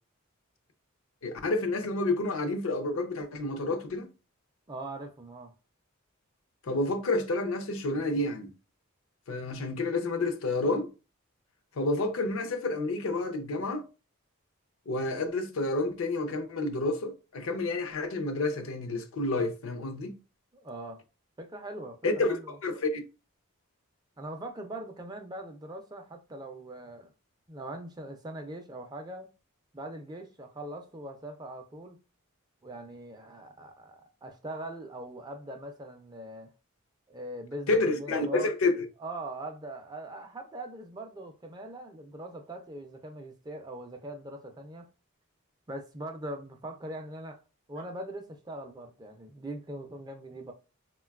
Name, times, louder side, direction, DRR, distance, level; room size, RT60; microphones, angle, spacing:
voice 1, 1.2-4.1 6.6-8.5 9.3-10.9 11.8-13.8 14.9-20.1 22.0-23.0 37.7-38.8, left 2 dB, 70° left, 0.5 m, -29 dB
voice 2, 4.7-5.5 20.5-21.0 21.4-22.0 22.3-22.6 24.2-27.1 27.5-29.3 29.7-32.0 32.6-36.5 37.1-38.5 39.0-44.9 45.7-47.4 47.7-50.5, right 1 dB, 20° right, 0.3 m, -41 dB
3.8 x 2.2 x 2.3 m
head